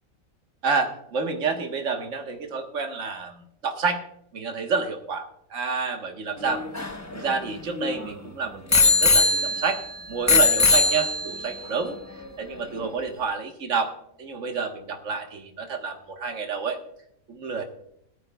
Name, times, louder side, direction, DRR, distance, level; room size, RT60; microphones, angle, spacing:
voice 1, 0.6-4.0 4.3-6.6 7.1-9.8 10.1-12.0 12.4-13.9 14.2-16.8 17.3-17.6, right 4 dB, 65° right, 3 dB, 1.7 m, -29 dB
Bicycle bell, 6.4-8.1 8.7-9.9 10.3-11.5 12.3-12.4, left 3 dB, 15° left, 0.8 m, -21 dB
18.5 x 13.5 x 2.3 m, 0.72 s
omnidirectional pair, 1.4 m